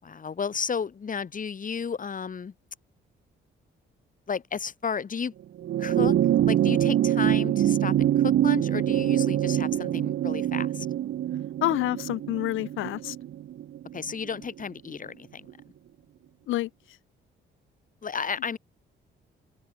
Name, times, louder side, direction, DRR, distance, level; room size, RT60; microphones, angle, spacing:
voice 1, 0.0-2.5 4.3-5.3 5.8-6.1 6.5-10.9 13.9-15.5 18.0-18.6, left 6 dB, 40° left, 6.1 m, -33 dB
sound 1, 5.6-14.3 15.5-15.6, right 12 dB, 75° right, 2.9 m, -25 dB
voice 2, 11.6-13.2 16.5-16.7, left 16 dB, 90° left, 2.2 m, -28 dB
open air
cardioid pair, 90°, 20 cm